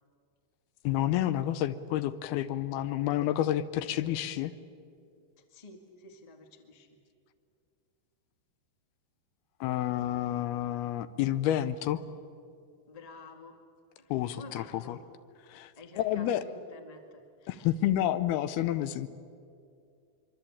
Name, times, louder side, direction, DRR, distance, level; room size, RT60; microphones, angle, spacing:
voice 1, 0.8-4.5 9.6-12.0 14.1-15.0 15.5-15.7 16.0-16.4 17.5-19.1, left 12 dB, 75° left, 13 dB, 2.6 m, -29 dB
voice 2, 5.4-7.0 12.9-13.6 14.0-15.0 15.7-17.7, left 3 dB, 40° left, 4 dB, 0.5 m, -50 dB
24.0 x 24.0 x 8.6 m, 2.4 s
omnidirectional pair, 4.7 m